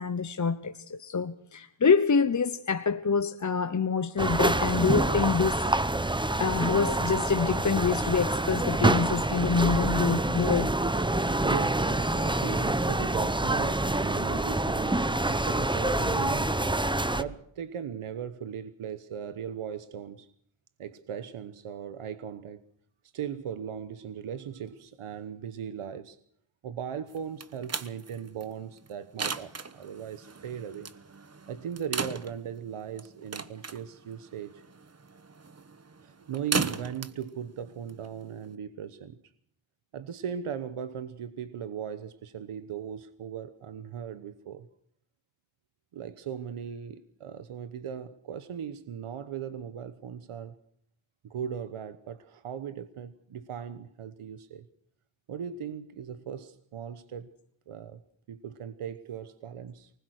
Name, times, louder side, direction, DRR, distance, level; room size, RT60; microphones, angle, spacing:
voice 1, 0.0-5.7 6.4-10.7, left 5 dB, 35° left, 1.0 m, -26 dB
sound 1, 4.2-17.2, right 2 dB, 10° right, 0.9 m, -26 dB
voice 2, 11.4-16.5 17.1-20.3 20.8-22.6 23.1-26.2 26.6-30.9 31.5-34.6 36.0-39.2 39.9-44.7 45.9-50.6 51.2-54.7 55.3-57.3 57.7-58.0 58.3-59.9, right 8 dB, 90° right, 1.2 m, -38 dB
sound 2, 27.1-38.5, right 4 dB, 30° right, 1.2 m, -37 dB
24.5 x 20.0 x 6.5 m
wide cardioid pair, 90°, 49 cm